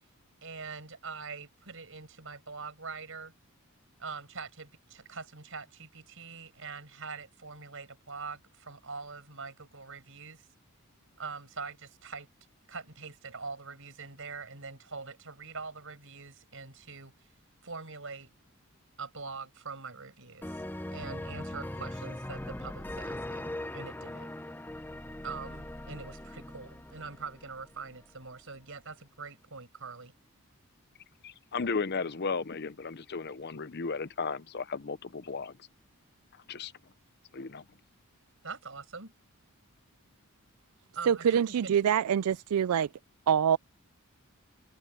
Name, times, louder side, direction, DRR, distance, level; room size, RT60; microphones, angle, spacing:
voice 1, 0.4-3.3 4.0-10.5 11.2-12.3 12.7-17.1 17.6-18.3 19.0-20.6 20.9-24.3 25.2-30.1 38.4-39.1 40.9-41.7, right 4 dB, 60° right, 5.9 m, -43 dB
sound 1, 20.4-28.0, left 1 dB, 10° left, 0.8 m, -40 dB
voice 2, 31.2-35.6 36.5-36.7 37.3-37.6, left 4 dB, 50° left, 0.7 m, -35 dB
voice 3, 41.1-42.9 43.3-43.6, right 8 dB, 85° right, 0.4 m, -25 dB
head